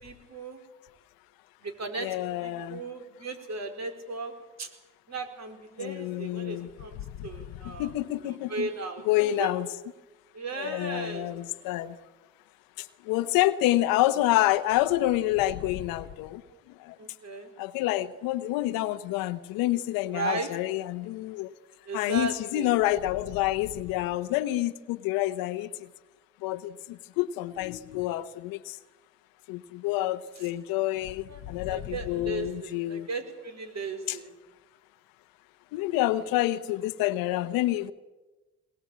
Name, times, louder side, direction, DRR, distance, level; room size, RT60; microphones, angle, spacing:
voice 1, 0.0-0.6 1.6-2.1 2.4-4.3 4.6-4.7 5.1-7.9 8.3-9.5 10.3-11.3 17.0-17.5 20.1-20.5 21.9-22.7 30.4-30.5 31.3-34.3 35.9-36.0, right 3 dB, 50° right, 6 dB, 4.6 m, -36 dB
voice 2, 2.0-2.8 5.8-6.7 7.6-8.7 9.1-9.7 10.6-11.9 13.1-16.4 16.9-17.0 17.6-21.5 21.9-25.7 26.4-26.7 27.2-28.8 29.5-33.1 34.1-34.2 35.7-37.9, left 15 dB, 90° left, 10 dB, 0.9 m, -28 dB
22.0 x 20.5 x 8.6 m, 1.1 s
supercardioid pair, 65°, 34 cm